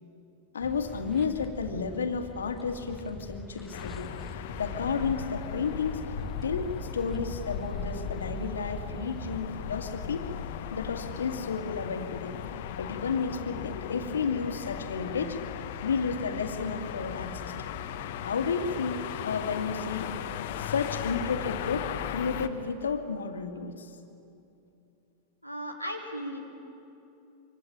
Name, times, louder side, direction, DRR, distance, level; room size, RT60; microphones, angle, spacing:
voice 1, 0.5-4.1 4.6-6.0 6.4-10.3 10.7-12.3 12.8-15.4 15.8-17.7 18.2-20.2 20.6-23.9, left 5 dB, 70° left, 6 dB, 2.2 m, -32 dB
sound 1, 0.6-9.4, equal, 10° left, 1.5 m, -43 dB
sound 2, 3.7-22.5, left 9 dB, 55° left, 1.3 m, -37 dB
voice 2, 25.4-26.4, equal, 90° right, 3 dB, 3.6 m, -36 dB
26.5 x 25.0 x 8.8 m, 2.8 s
figure-of-eight pair, 90°, 0 cm